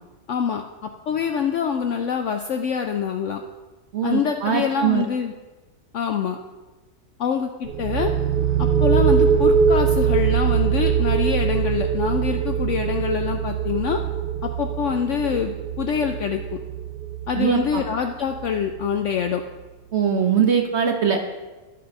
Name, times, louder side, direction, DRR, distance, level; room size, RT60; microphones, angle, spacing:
voice 1, 0.3-0.6 1.1-3.4 4.0-5.3 5.9-6.4 7.2-8.1 8.6-14.0 14.4-16.4 17.3-19.4, left 7 dB, 70° left, 6 dB, 0.7 m, -25 dB
voice 2, 3.9-5.0 17.3-17.8 19.9-21.2, right 7 dB, 55° right, 4 dB, 0.8 m, -21 dB
sound 1, 7.6-19.2, right 7 dB, 85° right, 1.3 m, -22 dB
12.0 x 4.3 x 5.2 m, 1.2 s
omnidirectional pair, 1.7 m